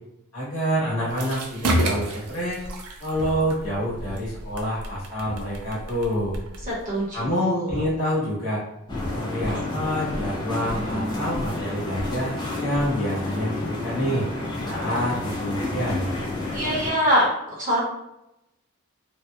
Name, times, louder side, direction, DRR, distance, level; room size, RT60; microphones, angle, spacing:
voice 1, 0.3-2.6 3.0-6.3 7.1-8.6 9.1-14.2 14.6-16.1, equal, 70° left, -7 dB, 1.2 m, -27 dB
sound 1, 1.1-7.3, right 1 dB, 90° right, 0.4 m, -30 dB
voice 2, 6.7-7.8 16.5-17.3 17.6-17.8, equal, 35° right, -6 dB, 0.9 m, -23 dB
Gurgling / Sink (filling or washing) / Liquid, 7.7-8.0 8.9-11.6 12.0-12.2 12.7-13.0 13.9-14.1, equal, 45° left, 0.9 m, -36 dB
sound 2, 8.9-16.9, left 2 dB, 20° left, 0.4 m, -30 dB
2.7 x 2.1 x 2.3 m, 0.87 s
head